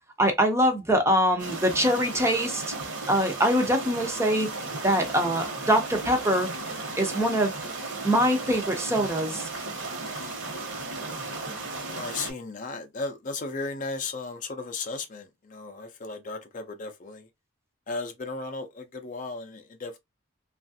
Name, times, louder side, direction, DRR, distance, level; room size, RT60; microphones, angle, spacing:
voice 1, 0.2-2.6 3.1-4.5 4.8-6.5 7.0-7.5 8.0-9.5, equal, 15° right, 0.5 m, -23 dB
sound 1, 1.4-12.3, right 3 dB, 60° right, 1.0 m, -35 dB
voice 2, 11.9-17.2 17.9-20.0, left 3 dB, 40° left, 0.5 m, -35 dB
3.1 x 2.4 x 2.6 m
head